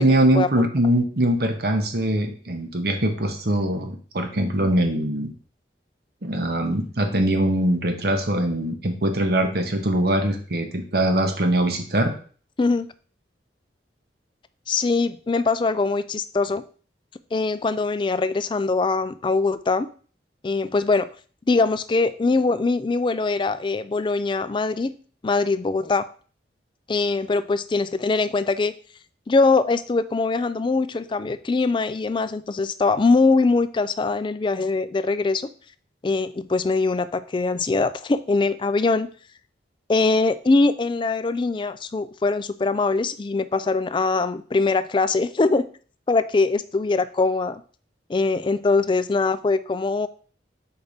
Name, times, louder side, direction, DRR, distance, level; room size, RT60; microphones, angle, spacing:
voice 1, 0.0-5.3 6.2-12.1, right 1 dB, 60° right, 5 dB, 1.1 m, -22 dB
voice 2, 14.7-16.6 17.3-19.9 20.4-21.1 21.5-25.0 25.2-26.0 26.9-28.7 29.3-35.5 36.0-39.1 39.9-45.7 46.1-47.6 48.1-50.1, left 3 dB, 25° left, 13 dB, 0.3 m, -22 dB
4.6 x 4.1 x 5.0 m, 0.42 s
head